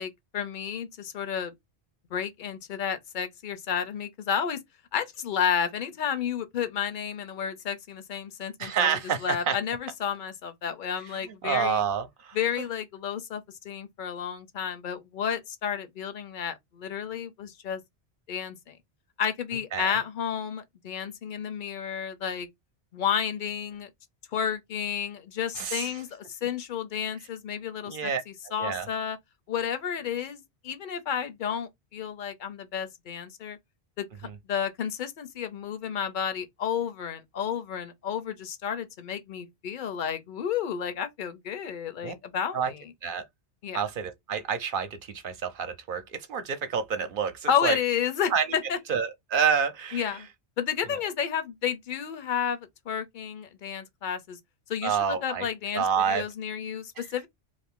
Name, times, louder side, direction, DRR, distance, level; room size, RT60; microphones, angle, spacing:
voice 1, 0.0-1.5 2.1-4.6 4.9-11.8 12.3-17.8 18.3-18.8 19.2-22.5 22.9-23.9 24.3-29.2 29.5-33.6 34.0-34.1 34.5-42.8 43.6-43.8 47.5-48.8 49.9-50.3 50.6-54.4 54.7-57.3, left 8 dB, 55° left, 0.6 m, -31 dB
voice 2, 8.6-9.6 11.0-12.7 19.7-20.0 25.6-26.0 27.8-28.2 28.6-28.9 34.2-34.4 42.0-42.1 42.5-42.7 43.0-43.2 43.7-47.8 48.3-48.5 48.9-50.2 54.8-55.5 55.7-56.3 57.0-57.1, right 7 dB, 55° right, 0.8 m, -28 dB
2.6 x 2.5 x 3.5 m
omnidirectional pair, 1.1 m